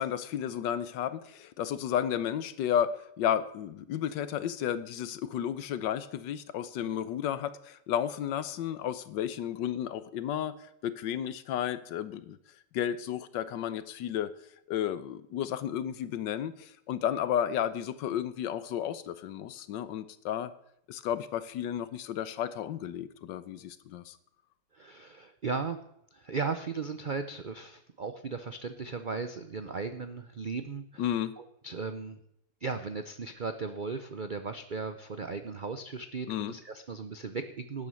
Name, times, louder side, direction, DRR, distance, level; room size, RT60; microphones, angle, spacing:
voice 1, 0.0-12.4 12.7-14.3 14.7-20.5 20.9-24.2 31.0-31.4 36.3-36.6, left 10 dB, 85° left, 14 dB, 1.4 m, -32 dB
voice 2, 24.7-25.8 26.1-31.1 31.4-32.2 32.6-37.9, right 4 dB, 70° right, 9 dB, 0.4 m, -36 dB
12.5 x 9.4 x 6.4 m, 0.75 s
omnidirectional pair, 1.9 m